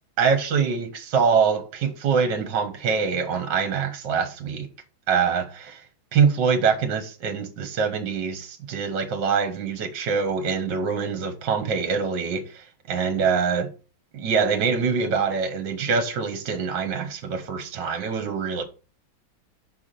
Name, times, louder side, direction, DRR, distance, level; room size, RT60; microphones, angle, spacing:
voice 1, 0.2-4.7 5.1-5.8 6.1-13.7 14.1-18.6, right 6 dB, 60° right, 1.9 m, -24 dB
6.0 x 4.7 x 6.7 m
omnidirectional pair, 2.3 m